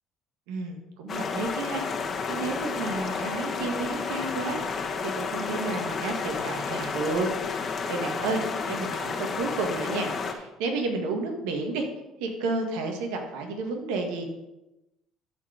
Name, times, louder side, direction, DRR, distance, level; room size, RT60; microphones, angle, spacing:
voice 1, 0.5-1.9 2.3-7.3 7.5-8.4 8.7-11.9 12.2-14.2, right 3 dB, 80° right, 3 dB, 1.6 m, -31 dB
sound 1, 1.1-10.3, left 5 dB, 45° left, 1.4 m, -31 dB
13.5 x 4.6 x 5.0 m, 0.97 s
hypercardioid pair, 70°, 0 cm